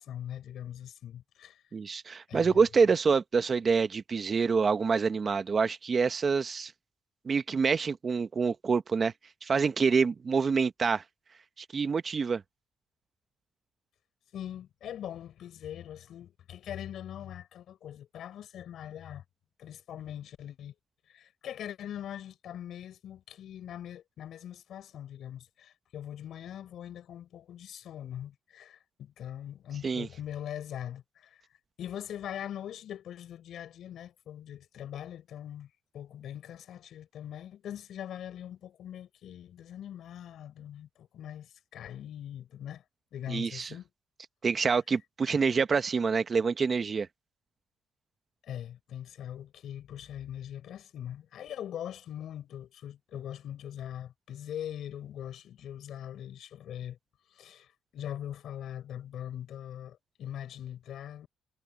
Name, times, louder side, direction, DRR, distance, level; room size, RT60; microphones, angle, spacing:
voice 1, 0.0-1.6 2.3-2.6 14.3-19.2 19.6-20.7 21.1-31.4 31.8-42.8 43.1-43.9 48.4-57.0 57.3-61.3, left 10 dB, 70° left, 5.5 m, -42 dB
voice 2, 1.7-6.7 7.2-9.1 9.4-11.0 11.6-12.4 29.8-30.1 43.3-43.7 44.4-47.1, right 5 dB, 40° right, 1.2 m, -26 dB
cardioid pair, 90°, 0 cm